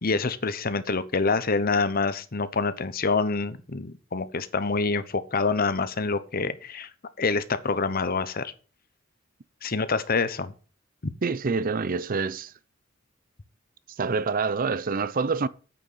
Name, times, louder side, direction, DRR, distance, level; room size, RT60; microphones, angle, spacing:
voice 1, 0.0-6.9 7.2-8.5 9.6-10.5 11.0-11.1, left 4 dB, 50° left, 0.9 m, -26 dB
voice 2, 11.2-12.5 14.0-15.5, right 4 dB, 45° right, 0.6 m, -26 dB
9.0 x 6.5 x 7.4 m
head